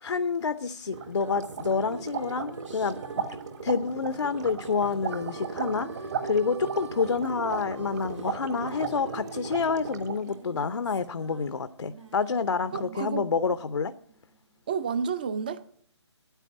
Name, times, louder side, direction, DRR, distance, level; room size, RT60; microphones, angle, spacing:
voice 1, 0.0-3.3 3.6-13.9, left 5 dB, 70° left, 0.7 m, -28 dB
sound 1, 0.9-10.3, right 6 dB, 35° right, 1.2 m, -36 dB
sound 2, 0.9-14.6, right 3 dB, 85° right, 2.3 m, -45 dB
Harmonica, 4.8-9.1, right 6 dB, 70° right, 1.5 m, -50 dB
voice 2, 12.7-13.3 14.7-15.7, right 6 dB, 20° right, 0.4 m, -30 dB
9.3 x 9.1 x 8.6 m
figure-of-eight pair, 160°, 15 cm